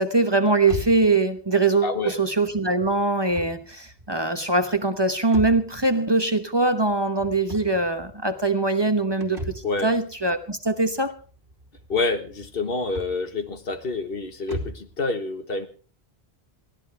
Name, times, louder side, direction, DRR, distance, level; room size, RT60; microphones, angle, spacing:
voice 1, 0.0-1.9 2.2-9.4 9.8-11.1, right 3 dB, 25° right, 8 dB, 1.1 m, -22 dB
sound 1, 0.6-15.0, equal, 65° right, 2.8 m, -40 dB
voice 2, 1.8-2.2 9.6-9.9 11.9-15.7, left 3 dB, 65° left, 8 dB, 1.6 m, -27 dB
22.0 x 15.0 x 3.4 m, 0.38 s
omnidirectional pair, 1.0 m